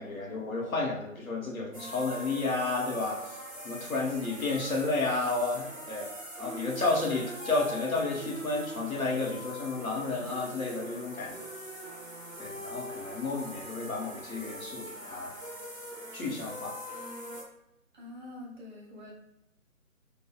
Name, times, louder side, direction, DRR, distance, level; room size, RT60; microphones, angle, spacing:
voice 1, 0.0-3.4 3.6-6.1 6.4-11.5 12.4-15.3 16.1-16.8, left 3 dB, 80° left, -1 dB, 0.9 m, -32 dB
sound 1, 1.7-17.4, equal, 5° right, 0.6 m, -42 dB
voice 2, 17.9-19.1, left 1 dB, 35° right, -4 dB, 0.9 m, -45 dB
2.8 x 2.2 x 2.3 m, 0.82 s
figure-of-eight pair, 145°, 41 cm